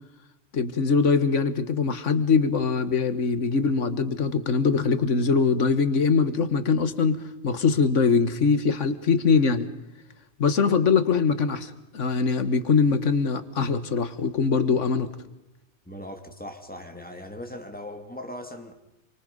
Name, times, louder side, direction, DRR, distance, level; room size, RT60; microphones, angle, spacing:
voice 1, 0.5-7.2 7.4-9.7 10.4-15.1, left 5 dB, 60° left, 12 dB, 1.7 m, -22 dB
voice 2, 15.9-18.7, left 1 dB, 5° left, 4 dB, 2.5 m, -39 dB
27.5 x 25.0 x 5.4 m, 0.88 s
omnidirectional pair, 1.4 m